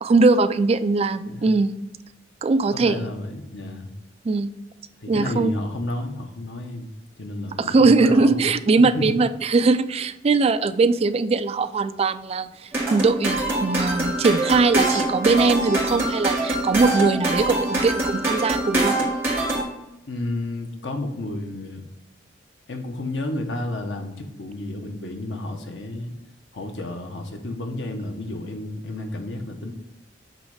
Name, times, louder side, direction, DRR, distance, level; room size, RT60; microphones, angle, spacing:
voice 1, 0.0-1.8 2.4-3.1 4.3-4.5 5.1-5.5 7.6-19.0, right 3 dB, 35° right, 12 dB, 0.3 m, -20 dB
voice 2, 2.7-3.9 5.0-6.9 7.2-9.2 20.1-21.8 22.7-26.1 26.5-29.7, left 1 dB, 90° left, 4 dB, 1.1 m, -31 dB
sound 1, 12.7-19.6, right 2 dB, 15° right, 2.2 m, -24 dB
8.2 x 3.1 x 4.9 m, 0.92 s
head